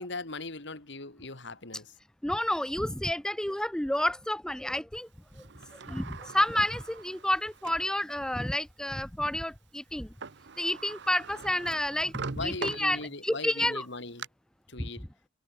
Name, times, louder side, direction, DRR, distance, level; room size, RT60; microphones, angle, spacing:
voice 1, 0.0-1.9 12.3-14.3 14.7-15.0, left 3 dB, 65° left, 2.9 m, -39 dB
voice 2, 2.2-5.1 5.9-10.1 10.6-12.1 12.4-13.8 14.8-14.9, left 1 dB, 5° left, 0.4 m, -30 dB
Sliding door, 5.3-8.0 8.5-8.6 9.9-10.0 10.2-13.4 13.8-14.3, right 4 dB, 60° right, 1.0 m, -42 dB
head